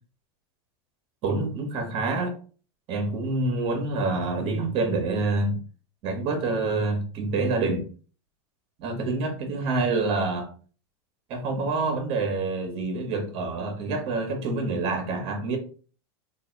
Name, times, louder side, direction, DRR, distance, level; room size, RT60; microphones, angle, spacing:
voice 1, 1.2-2.4 2.9-5.6 6.0-7.9 8.8-10.5 11.3-15.6, right 3 dB, 45° right, 1.3 m, -27 dB
3.4 x 2.6 x 4.5 m
supercardioid pair, 150°, 14 cm